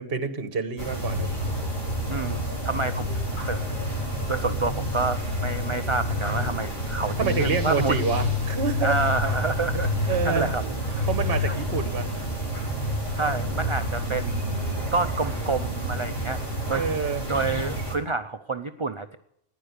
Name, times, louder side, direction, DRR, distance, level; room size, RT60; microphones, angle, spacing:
voice 1, 0.0-1.3 7.2-9.0 10.1-10.5 11.1-12.3 16.7-17.2, right 5 dB, 55° right, 9 dB, 1.4 m, -27 dB
sound 1, 0.8-18.0, left 1 dB, 25° left, 3.6 m, -28 dB
voice 2, 2.1-3.1 3.5-3.6 4.3-8.0 8.8-10.6 10.9-11.0 11.5-11.6 13.1-16.4 16.7-16.8 17.3-19.2, right 3 dB, 35° right, 9 dB, 0.5 m, -28 dB
15.0 x 10.5 x 8.2 m, 0.75 s
omnidirectional pair, 1.3 m